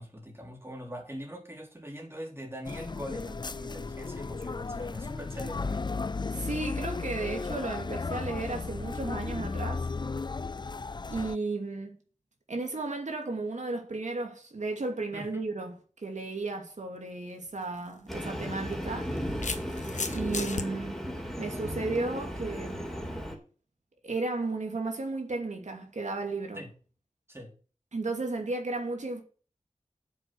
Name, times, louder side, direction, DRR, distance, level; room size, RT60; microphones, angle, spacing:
voice 1, 0.0-5.9 15.1-15.5 26.5-26.7 27.3-27.5, equal, 20° right, 4.1 m, -42 dB
sound 1, 2.6-11.4, left 4 dB, 40° left, 0.4 m, -35 dB
voice 2, 6.3-9.9 11.1-12.0 12.5-15.7 16.0-19.2 20.1-21.0 21.4-22.8 24.0-26.6 27.9-29.2, right 3 dB, 80° right, 2.6 m, -34 dB
sound 2, 17.5-17.6 18.7-20.7, left 4 dB, 90° left, 1.4 m, -35 dB
Train, 18.1-23.3, equal, ahead, 3.9 m, -35 dB
9.3 x 7.6 x 6.3 m
wide cardioid pair, 45°, 12 cm